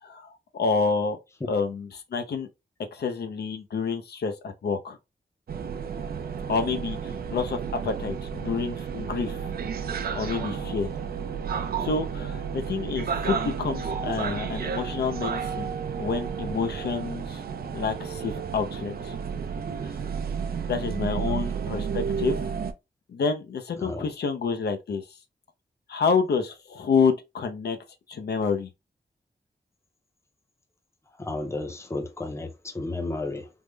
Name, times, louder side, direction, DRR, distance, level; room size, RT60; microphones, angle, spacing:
voice 1, 0.0-1.2 1.5-2.5 2.9-5.0 6.5-9.4 10.1-10.9 11.8-17.4 17.7-19.1 19.8-19.9 20.7-22.6 23.1-25.1 25.9-27.8 28.1-28.7, left 5 dB, 70° left, 0.5 m, -28 dB
sound 1, 5.5-22.7, right 6 dB, 60° right, 0.4 m, -32 dB
voice 2, 31.2-33.5, left 2 dB, 15° left, 0.6 m, -33 dB
3.5 x 2.0 x 3.2 m
wide cardioid pair, 160°, 18 cm